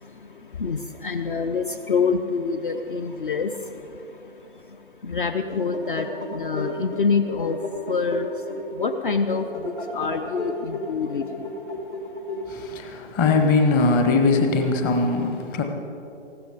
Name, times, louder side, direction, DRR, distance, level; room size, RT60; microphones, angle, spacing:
voice 1, 0.6-3.5 5.1-6.1 6.3-7.6 7.9-8.3 8.8-9.4 9.9-11.2, left 5 dB, 45° left, 8 dB, 0.7 m, -25 dB
sound 1, 5.4-12.9, left 1 dB, 70° left, 3.1 m, -34 dB
voice 2, 12.5-15.6, left 3 dB, 15° left, 4 dB, 0.9 m, -21 dB
19.5 x 15.0 x 3.5 m, 2.9 s
figure-of-eight pair, 140°, 35 cm